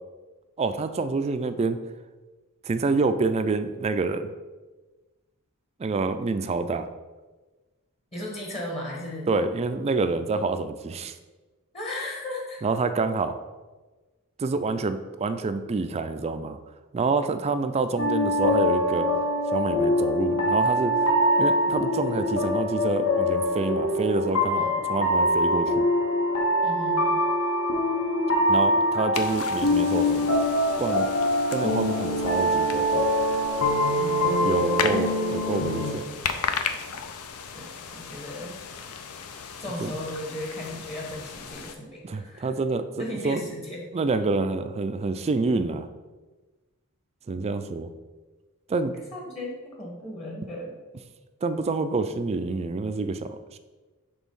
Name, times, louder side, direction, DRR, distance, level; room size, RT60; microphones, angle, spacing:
voice 1, 0.6-1.9 2.6-4.3 5.8-6.9 9.3-11.1 12.6-13.4 14.4-16.6 16.9-19.1 19.5-21.0 21.4-25.9 28.5-30.3 30.8-31.1 31.5-33.1 34.4-36.1 39.8-39.9 42.0-43.5 43.9-45.9 47.3-47.9 48.7-49.0 51.4-53.6, right 3 dB, 30° right, 10 dB, 0.3 m, -27 dB
voice 2, 8.1-9.3 11.7-12.6 24.5-24.7 26.6-27.2 33.9-34.5 37.5-38.6 39.6-42.5 43.0-43.9 49.1-50.7, left 1 dB, 30° left, -1 dB, 1.2 m, -36 dB
sound 1, 18.0-35.9, left 1 dB, 65° left, 1.1 m, -24 dB
sound 2, 29.1-41.8, left 6 dB, 85° left, 0.5 m, -36 dB
6.2 x 3.4 x 5.4 m, 1.2 s
head